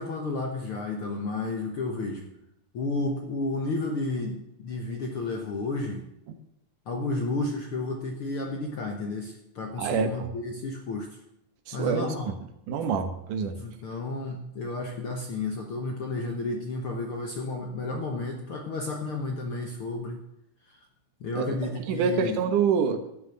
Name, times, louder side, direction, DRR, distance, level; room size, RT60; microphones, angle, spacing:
voice 1, 0.0-2.3 2.7-6.1 6.9-11.1 11.7-12.3 13.6-20.2 20.7-20.8 21.2-22.4, left 2 dB, 60° left, 2 dB, 1.5 m, -32 dB
voice 2, 9.8-10.3 11.7-12.1 12.7-13.6 21.3-21.5 21.8-23.0, right 6 dB, 75° right, 8 dB, 2.5 m, -26 dB
12.0 x 6.3 x 8.7 m, 0.81 s
omnidirectional pair, 3.9 m